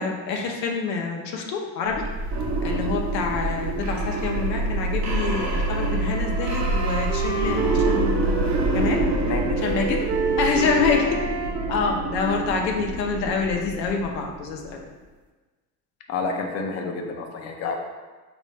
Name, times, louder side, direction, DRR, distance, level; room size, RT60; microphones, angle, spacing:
voice 1, 0.0-2.1 2.6-9.1 9.6-10.0 10.4-11.2 11.7-14.8, left 5 dB, 85° left, 1 dB, 0.7 m, -26 dB
sound 1, 1.9-14.7, right 2 dB, 35° right, 0.8 m, -26 dB
Wind instrument woodwind instrument, 5.2-8.8 9.1-13.1, right 6 dB, 70° right, 0.7 m, -31 dB
voice 2, 9.3-9.6 10.6-10.7 16.1-17.8, left 4 dB, 35° left, 2 dB, 0.6 m, -29 dB
4.0 x 2.6 x 3.3 m, 1.3 s
hypercardioid pair, 80°, 49 cm